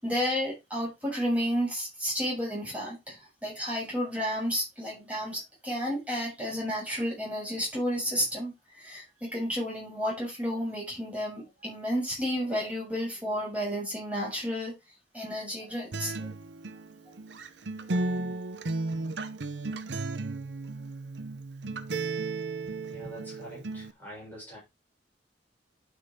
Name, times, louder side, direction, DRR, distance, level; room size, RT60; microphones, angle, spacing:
voice 1, 0.0-14.7 15.1-16.3, equal, 10° right, 7.3 m, -31 dB
Acoustic guitar, 15.9-23.9, right 3 dB, 70° right, 0.8 m, -34 dB
voice 2, 22.9-24.6, equal, 10° left, 6.8 m, -45 dB
11.5 x 5.7 x 3.7 m
head